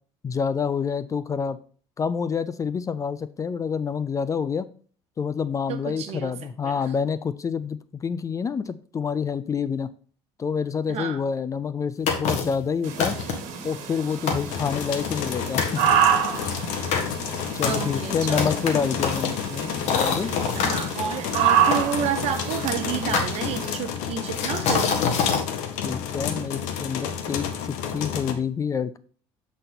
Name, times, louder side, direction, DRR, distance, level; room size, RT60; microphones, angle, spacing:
voice 1, 0.2-1.6 2.0-4.7 5.2-9.9 10.4-13.2 13.6-15.9 17.5-20.3 25.8-29.0, left 6 dB, 25° left, 15 dB, 0.4 m, -27 dB
voice 2, 5.7-6.3 6.6-6.9 10.9-11.2 17.6-18.6 20.5-25.0, right 8 dB, 60° right, 7 dB, 1.2 m, -30 dB
sound 1, 12.1-12.6 13.0-13.5 14.0-14.1 14.3-15.3 15.6-15.8 16.3-20.8 21.7-22.6 23.1-23.9 24.3-25.4, left 6 dB, 70° left, 1.5 m, -26 dB
sound 2, 12.8-23.7, right 8 dB, 75° right, 1.4 m, -28 dB
sound 3, 14.5-28.3, left 8 dB, 85° left, 0.9 m, -31 dB
7.7 x 4.2 x 4.1 m, 0.43 s
supercardioid pair, 105°, 12 cm